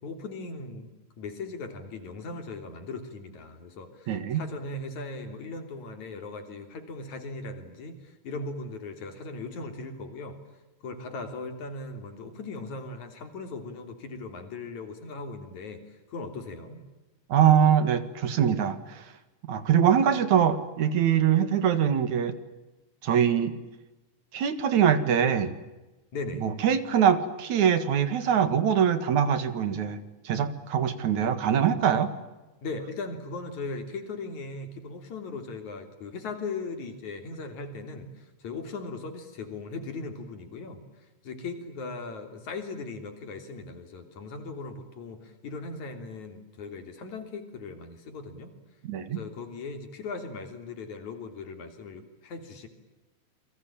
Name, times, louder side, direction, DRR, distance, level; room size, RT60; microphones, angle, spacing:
voice 1, 0.0-0.9 1.2-10.4 10.8-16.8 26.1-26.5 32.6-40.8 41.2-48.5 49.1-52.7, left 3 dB, 75° left, 6 dB, 4.7 m, -38 dB
voice 2, 4.1-4.4 17.3-19.0 19.5-22.3 23.0-23.5 24.3-25.5 26.4-32.1 48.9-49.2, right 8 dB, 75° right, 12 dB, 3.2 m, -23 dB
29.0 x 23.0 x 8.9 m, 1.1 s
omnidirectional pair, 3.4 m